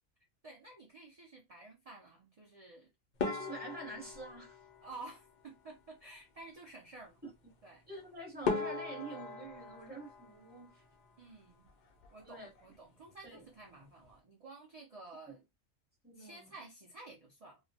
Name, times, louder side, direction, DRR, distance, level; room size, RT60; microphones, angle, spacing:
voice 1, 0.4-2.9 4.8-7.2 7.6-7.8 11.2-11.7 12.1-15.4 16.2-17.6, right 3 dB, 60° right, 0.3 m, -52 dB
sound 1, 3.2-5.7 7.9-8.0 8.4-11.2 11.5-12.3 12.6-12.8 13.1-13.2 13.8-14.1, left 4 dB, 70° left, 0.4 m, -40 dB
voice 2, 3.2-4.6 7.2-7.3 7.9-10.8 12.2-12.5 13.2-13.4 16.0-16.5, right 2 dB, 10° right, 0.8 m, -46 dB
2.3 x 2.1 x 2.6 m
omnidirectional pair, 1.4 m